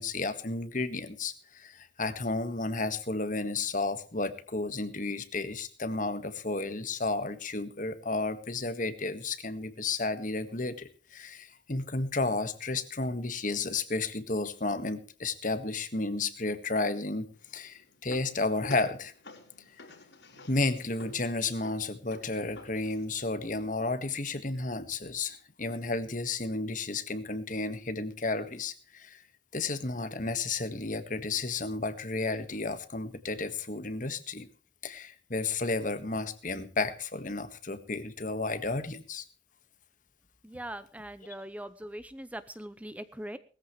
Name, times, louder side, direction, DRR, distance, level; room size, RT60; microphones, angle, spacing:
voice 1, 0.0-17.3 17.5-19.1 20.5-29.2 29.5-34.5 34.8-39.2, left 3 dB, 45° left, 11 dB, 1.6 m, -32 dB
sound 1, 17.3-23.1, left 2 dB, 70° left, 4.7 m, -50 dB
voice 2, 40.4-43.4, right 1 dB, 10° right, 13 dB, 0.7 m, -41 dB
20.0 x 14.5 x 3.2 m, 0.40 s
head